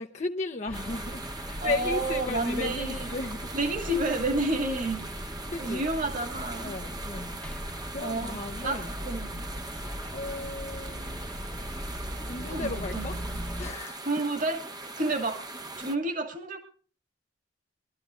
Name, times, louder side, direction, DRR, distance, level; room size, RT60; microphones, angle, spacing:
voice 1, 0.0-3.5 5.5-5.8 6.6-7.4 7.9-9.0 9.8-11.3 11.6-11.7 12.3-13.2 13.6-14.0, left 3 dB, 40° left, 3 dB, 0.8 m, -35 dB
sound 1, 0.7-13.7, equal, 5° left, 1.1 m, -39 dB
sound 2, 0.7-16.0, right 2 dB, 20° right, 1.0 m, -41 dB
voice 2, 1.6-3.1 3.5-5.0 5.6-6.8 8.0-8.4 8.6-9.4 12.5-13.2 14.1-14.7 15.0-15.5 15.8-16.6, right 2 dB, 45° right, 5 dB, 2.2 m, -30 dB
23.5 x 13.0 x 2.5 m, 0.40 s
head